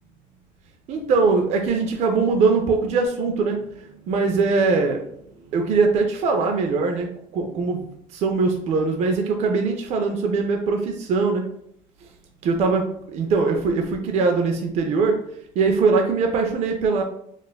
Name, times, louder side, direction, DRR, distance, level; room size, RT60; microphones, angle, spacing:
voice 1, 0.9-5.1 5.5-7.1 7.3-11.4 12.4-15.2 15.6-17.0, right 4 dB, 45° right, 3 dB, 0.4 m, -21 dB
4.1 x 2.4 x 2.2 m, 0.71 s
cardioid pair, 155°, 15 cm